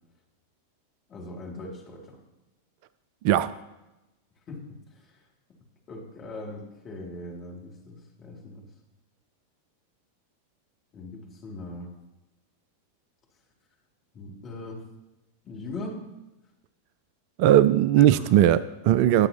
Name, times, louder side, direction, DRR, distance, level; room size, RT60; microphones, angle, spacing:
voice 1, 1.1-2.2 4.5-5.1 5.9-8.7 10.9-11.9 14.1-14.8 15.4-16.1 18.0-18.2, left 2 dB, 30° left, -1 dB, 2.6 m, -40 dB
voice 2, 17.4-19.3, right 12 dB, 45° right, 15 dB, 0.3 m, -19 dB
20.5 x 7.3 x 2.9 m, 1.0 s
figure-of-eight pair, 90°, 0 cm